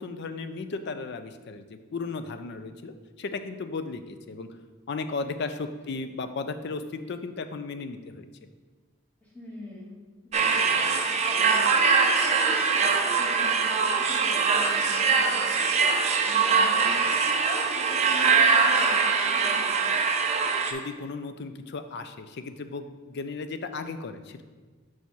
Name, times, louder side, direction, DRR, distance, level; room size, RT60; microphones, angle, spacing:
voice 1, 0.0-4.5 4.9-8.3 20.7-24.4, left 4 dB, 55° left, 9 dB, 0.4 m, -35 dB
voice 2, 9.2-10.0 10.2-20.0, equal, 5° left, -7 dB, 1.7 m, -42 dB
sound 1, 10.3-20.7, right 5 dB, 35° right, 0.5 m, -23 dB
6.2 x 4.7 x 4.1 m, 1.4 s
head